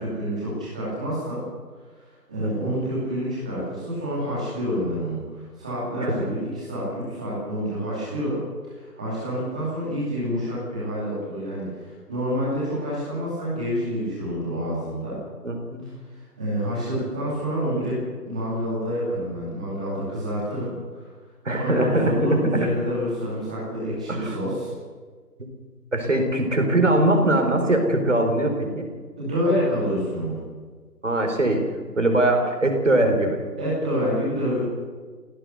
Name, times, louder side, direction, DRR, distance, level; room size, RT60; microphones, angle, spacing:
voice 1, 0.0-1.4 2.3-8.4 8.7-15.2 16.4-21.1 21.4-24.7 29.2-30.4 33.6-34.6, equal, 5° right, -8 dB, 2.4 m, -27 dB
voice 2, 2.4-2.7 6.0-6.1 15.4-15.8 21.4-22.7 24.1-24.4 25.9-28.9 31.0-31.6 32.0-33.4, right 1 dB, 50° right, 4 dB, 4.6 m, -22 dB
25.0 x 17.5 x 6.8 m, 1.5 s
figure-of-eight pair, 170°, 48 cm